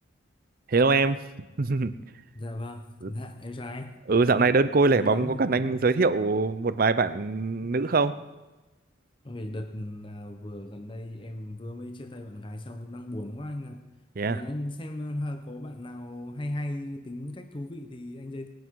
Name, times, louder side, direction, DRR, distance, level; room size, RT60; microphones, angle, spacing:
voice 1, 0.7-1.2 1.6-1.9 3.0-3.1 4.1-8.2 14.2-14.4, right 3 dB, 45° right, 13 dB, 0.5 m, -23 dB
voice 2, 2.3-4.0 5.0-5.6 9.2-13.9 14.3-18.5, left 1 dB, 25° left, 7 dB, 0.8 m, -37 dB
20.0 x 9.3 x 4.7 m, 1.2 s
head